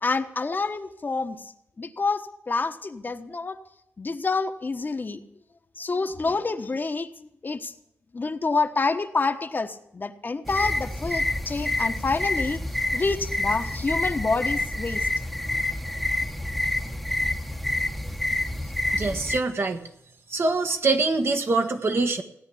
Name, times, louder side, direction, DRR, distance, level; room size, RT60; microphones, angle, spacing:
voice 1, 0.0-1.4 1.8-3.6 4.0-5.2 5.8-7.7 8.1-12.6 12.9-15.0, left 3 dB, 40° left, 7 dB, 1.3 m, -27 dB
sound 1, 10.5-19.4, left 1 dB, ahead, 1.2 m, -28 dB
voice 2, 18.9-19.8 20.3-22.2, right 3 dB, 55° right, 6 dB, 1.6 m, -24 dB
17.0 x 9.6 x 8.6 m, 0.77 s
cardioid pair, 60°, 5 cm